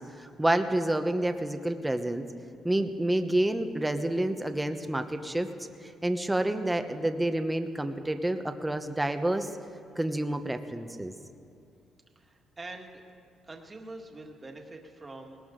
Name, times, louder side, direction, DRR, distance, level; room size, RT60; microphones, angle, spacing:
voice 1, 0.0-2.2 2.6-5.5 5.8-9.5 10.0-11.1, right 1 dB, 10° right, 7 dB, 1.0 m, -29 dB
voice 2, 12.2-13.0 13.5-15.5, right 2 dB, 25° right, 2 dB, 1.9 m, -45 dB
19.5 x 18.5 x 3.9 m, 2.5 s
cardioid pair, 90°, 0 cm